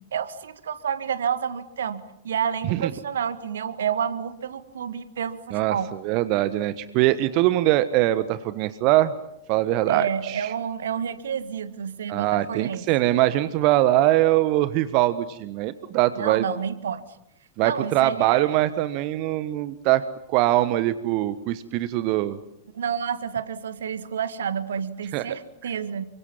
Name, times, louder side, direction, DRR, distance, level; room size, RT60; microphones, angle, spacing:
voice 1, 0.1-5.9 9.9-12.8 16.2-17.0 17.6-18.6 22.7-26.0, right 8 dB, 65° right, 12 dB, 1.8 m, -29 dB
voice 2, 6.0-9.1 9.5-10.5 12.1-16.4 17.6-22.4 25.1-25.2, right 15 dB, 45° right, 14 dB, 1.3 m, -22 dB
29.0 x 25.5 x 7.4 m, 0.81 s
figure-of-eight pair, 90°, 0 cm